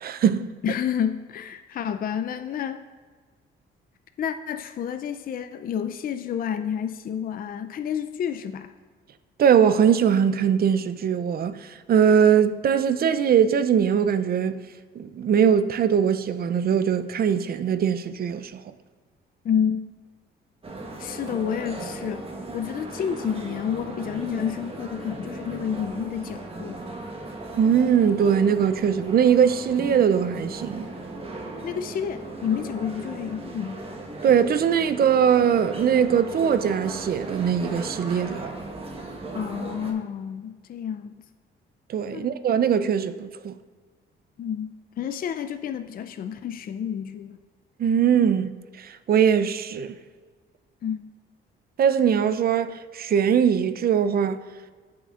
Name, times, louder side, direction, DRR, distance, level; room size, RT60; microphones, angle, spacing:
voice 1, 0.0-0.5 9.4-14.6 15.0-18.6 27.5-30.9 34.2-38.6 41.9-43.5 47.8-50.0 51.8-54.4, right 8 dB, 50° right, 0.5 m, -21 dB
voice 2, 0.6-2.8 4.2-8.7 19.4-19.8 21.0-22.3 22.5-26.8 31.6-33.8 39.3-41.1 42.1-42.3 44.4-47.4 50.8-51.0, left 8 dB, 45° left, 0.4 m, -29 dB
sound 1, 20.6-39.9, right 2 dB, 30° right, 1.3 m, -37 dB
14.5 x 5.8 x 2.4 m
cardioid pair, 90°, 20 cm